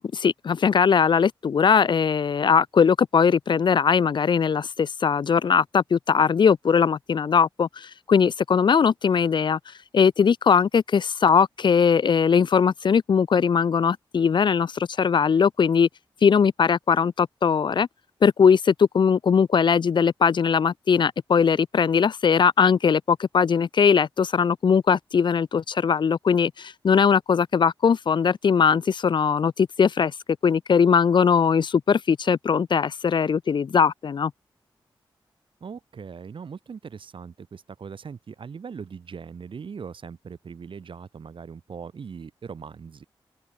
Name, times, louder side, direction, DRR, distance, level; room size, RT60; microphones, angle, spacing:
voice 1, 0.1-9.6 9.9-15.9 16.2-17.9 18.2-30.1 30.4-34.3, left 6 dB, 60° left, 0.5 m, -20 dB
voice 2, 35.6-43.0, right 6 dB, 70° right, 3.5 m, -40 dB
cardioid pair, 70°, 9 cm